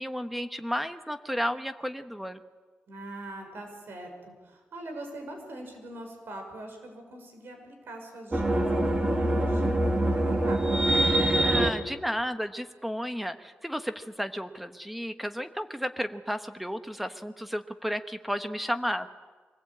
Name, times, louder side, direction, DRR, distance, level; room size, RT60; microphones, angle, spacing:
voice 1, 0.0-2.4 11.4-19.1, equal, 5° right, 9 dB, 1.1 m, -33 dB
voice 2, 2.9-10.8, right 1 dB, 70° right, 4 dB, 5.9 m, -43 dB
sound 1, 8.3-11.7, right 1 dB, 25° right, 2.5 m, -24 dB
23.5 x 19.5 x 8.7 m, 1.4 s
wide cardioid pair, 140°, 4 cm